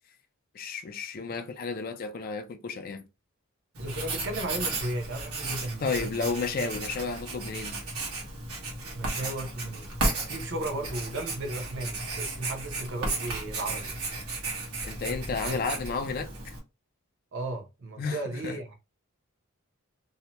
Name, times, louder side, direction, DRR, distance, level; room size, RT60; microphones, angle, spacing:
voice 1, 0.5-3.0 5.8-7.8 14.8-16.3 18.0-18.6, left 4 dB, 40° left, 0.3 m, -32 dB
voice 2, 3.8-6.3 8.9-9.9 10.3-13.9 15.5-15.6 17.3-18.7, right 2 dB, 55° right, 0.7 m, -35 dB
Writing, 3.8-16.6, right 2 dB, 90° right, 1.1 m, -34 dB
2.7 x 2.1 x 2.9 m
head